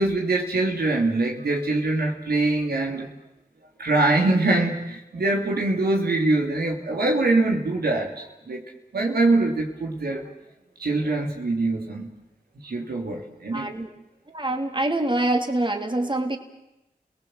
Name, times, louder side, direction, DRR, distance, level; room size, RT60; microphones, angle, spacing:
voice 1, 0.0-3.1 3.8-8.6 8.9-10.2 10.8-12.1 12.6-13.7, right 2 dB, 90° right, 1 dB, 3.0 m, -23 dB
voice 2, 13.5-13.9 14.3-16.4, right 1 dB, 30° right, 4 dB, 3.0 m, -25 dB
30.0 x 19.0 x 7.9 m, 0.92 s
cardioid pair, 40°, 16 cm